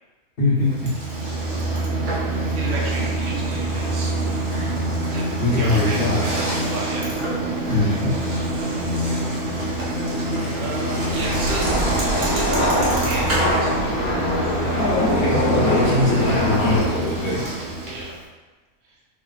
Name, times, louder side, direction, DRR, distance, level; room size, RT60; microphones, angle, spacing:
voice 1, 0.4-1.0 5.4-6.2 7.7-8.2 14.7-17.5, left 2 dB, 45° left, -7 dB, 1.1 m, -22 dB
Bicycle, 0.6-18.2, right 1 dB, 50° right, 0.9 m, -25 dB
voice 2, 2.5-4.4 5.1-7.1 10.6-14.1 17.8-18.2, right 2 dB, 90° right, -3 dB, 1.1 m, -33 dB
sound 1, 11.2-16.8, left 1 dB, 80° left, 1.3 m, -23 dB
3.2 x 2.2 x 3.9 m, 1.3 s
omnidirectional pair, 1.5 m